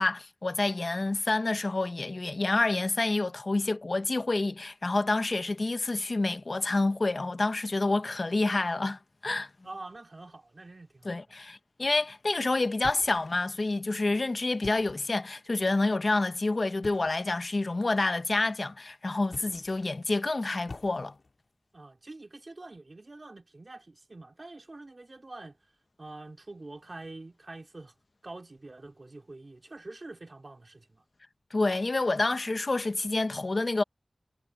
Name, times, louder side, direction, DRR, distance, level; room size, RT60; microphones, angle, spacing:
voice 1, 0.0-9.5 11.0-21.1 31.5-33.8, left 2 dB, 55° left, 1.1 m, -28 dB
voice 2, 9.6-11.2 21.7-25.7 26.0-27.9 28.2-31.0, right 2 dB, 50° right, 3.7 m, -46 dB
sound 1, 12.8-13.6 14.5-15.2 16.8-17.3 19.2-19.9 20.7-21.4, left 3 dB, 75° left, 5.3 m, -46 dB
wide cardioid pair, 65°, 0 cm